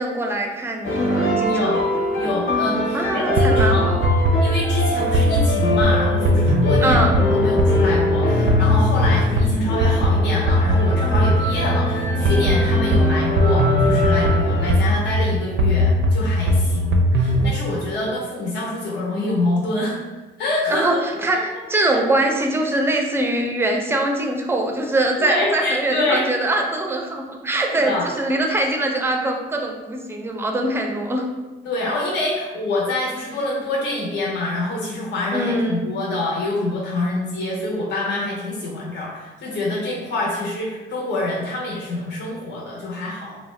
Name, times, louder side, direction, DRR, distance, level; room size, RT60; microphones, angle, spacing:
voice 1, 0.0-1.6 2.9-4.0 6.8-7.1 20.7-31.3 35.3-35.8, right 2 dB, 10° right, 2 dB, 0.4 m, -22 dB
sound 1, 0.8-14.7, left 1 dB, 90° left, 0.9 m, -23 dB
voice 2, 1.5-1.9 2.2-3.8 4.4-20.0 20.4-21.0 21.3-21.4 21.9-22.0 25.2-26.3 27.7-28.1 31.6-43.4, left 2 dB, 65° left, -3 dB, 0.6 m, -26 dB
sound 2, 3.4-17.6, equal, 75° right, 0.4 m, -19 dB
2.7 x 2.0 x 3.1 m, 1.2 s
cardioid pair, 90°, 20 cm